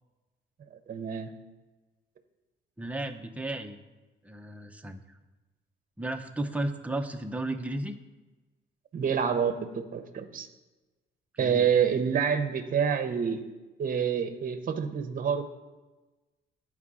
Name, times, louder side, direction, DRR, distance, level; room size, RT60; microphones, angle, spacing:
voice 1, 0.9-1.3 8.9-10.5 11.4-13.4 13.8-15.5, right 7 dB, 45° right, 9 dB, 0.8 m, -27 dB
voice 2, 2.8-3.8 4.2-5.0 6.0-7.9 11.3-11.7, right 1 dB, 5° right, 5 dB, 0.7 m, -34 dB
11.0 x 4.8 x 3.7 m, 1.2 s
cardioid pair, 90°, 20 cm